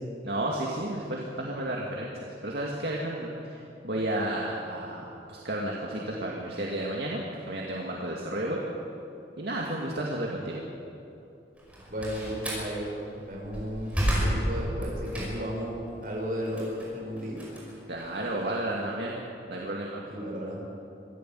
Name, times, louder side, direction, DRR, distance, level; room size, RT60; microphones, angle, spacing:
voice 1, 0.2-7.2 7.5-8.6 9.4-10.6 17.9-20.0, right 1 dB, 70° right, -2 dB, 2.3 m, -32 dB
Slam, 11.6-12.7 13.3-15.6 16.0-18.4, equal, 10° right, 5.4 m, -31 dB
voice 2, 11.9-17.4 20.1-20.6, equal, 50° right, -2 dB, 6.0 m, -34 dB
24.0 x 15.5 x 7.8 m, 2.9 s
head